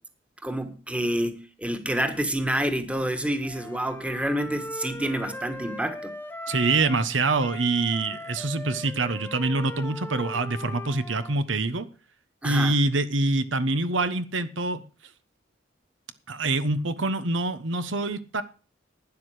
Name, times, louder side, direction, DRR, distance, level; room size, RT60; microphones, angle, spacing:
voice 1, 0.4-6.2 12.4-12.8, right 1 dB, 5° right, 9 dB, 1.5 m, -28 dB
Wind instrument woodwind instrument, 3.4-7.1 7.4-11.4, left 1 dB, 10° left, 1.0 m, -39 dB
voice 2, 6.5-11.9 12.4-14.8 16.3-18.4, right 3 dB, 80° right, 12 dB, 1.2 m, -25 dB
12.0 x 9.9 x 5.0 m, 0.35 s
head